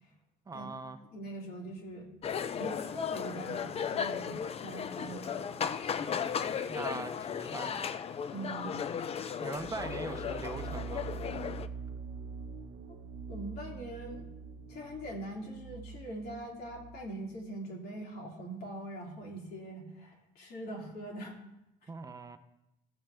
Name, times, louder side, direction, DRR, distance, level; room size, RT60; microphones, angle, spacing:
voice 1, 0.5-1.0 6.0-7.9 9.4-11.0 21.9-22.4, right 3 dB, 20° right, 8 dB, 0.6 m, -42 dB
voice 2, 1.1-2.1 2.5-5.5 8.3-8.8 13.3-14.3 14.7-21.4 21.8-21.9, right 1 dB, 70° left, -1 dB, 2.8 m, -42 dB
general ambience from bar, 2.2-11.7, left 7 dB, 35° left, 0.5 m, -36 dB
sound 1, 9.6-17.2, right 5 dB, 80° right, 0.7 m, -44 dB
16.0 x 7.3 x 3.4 m, 0.89 s
cardioid pair, 110°, 17 cm